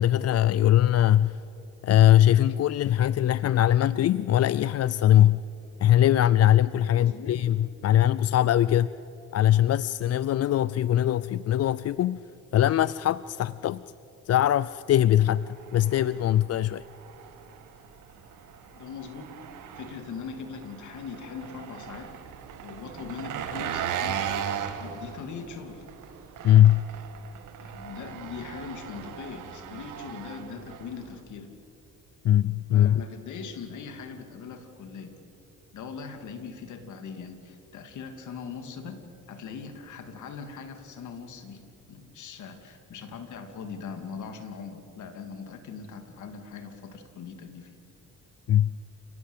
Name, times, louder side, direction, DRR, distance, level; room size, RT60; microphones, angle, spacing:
voice 1, 0.0-1.4 1.8-5.4 5.8-8.9 9.3-12.2 12.5-13.8 14.3-15.5 15.7-16.8 26.4-26.9 32.2-33.0 48.5-48.7, left 12 dB, 55° left, 0.5 m, -21 dB
voice 2, 6.9-7.5 18.7-19.3 19.8-22.1 22.6-24.3 24.8-25.9 27.6-31.5 32.7-35.1 35.7-41.6 41.9-47.7, left 6 dB, 75° left, 2.8 m, -40 dB
Engine, 15.4-31.2, right 8 dB, 85° right, 2.1 m, -38 dB
29.5 x 18.5 x 8.2 m
cardioid pair, 90°, 30 cm